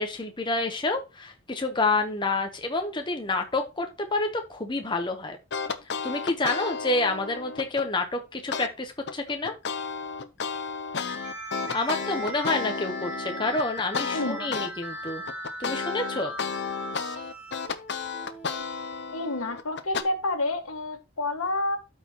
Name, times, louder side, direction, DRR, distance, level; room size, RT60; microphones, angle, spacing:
voice 1, 0.0-5.4 6.0-9.6 11.7-15.2 15.6-16.3, left 2 dB, 20° left, 5 dB, 0.8 m, -28 dB
sound 1, 5.5-7.9 8.5-8.7 9.1-14.7 15.1-20.0, left 5 dB, 55° left, 0.6 m, -32 dB
sound 2, 11.1-18.6, right 1 dB, 5° right, 1.6 m, -39 dB
voice 2, 14.1-14.5 19.1-21.8, left 2 dB, 85° left, 6 dB, 1.6 m, -29 dB
13.0 x 4.6 x 2.9 m, 0.27 s
head